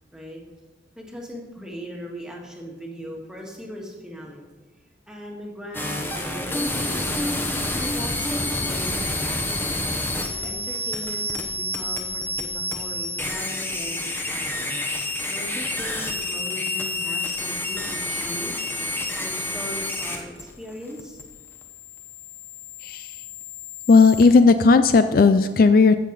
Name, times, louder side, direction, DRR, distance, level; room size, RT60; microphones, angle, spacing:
voice 1, 0.9-4.4 5.1-7.4 7.7-9.7 10.4-18.6 19.1-21.2, equal, 5° right, -1 dB, 1.7 m, -39 dB
sound 1, 5.7-24.2, left 2 dB, 10° left, 1.0 m, -29 dB
voice 2, 22.8-23.2 23.9-25.9, left 4 dB, 50° left, 10 dB, 0.4 m, -15 dB
15.5 x 6.6 x 4.0 m, 1.3 s
head